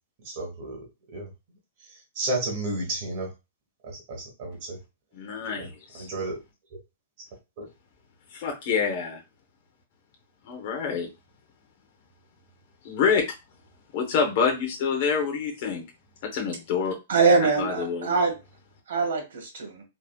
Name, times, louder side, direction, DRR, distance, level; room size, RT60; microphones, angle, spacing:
voice 1, 0.2-0.9 1.1-1.3 2.1-3.3 3.8-4.8 5.6-5.7 5.9-6.4 7.6-7.7, right 2 dB, 40° right, 0 dB, 1.0 m, -32 dB
voice 2, 5.1-6.1 8.3-9.2 10.5-11.1 12.8-13.2 13.9-15.8 16.3-16.9 17.4-18.1, left 6 dB, 40° left, 3 dB, 0.8 m, -27 dB
voice 3, 17.1-18.4 18.9-19.8, right 4 dB, 75° right, 3 dB, 1.3 m, -23 dB
3.5 x 2.3 x 2.2 m, 0.25 s
hypercardioid pair, 170°, 0 cm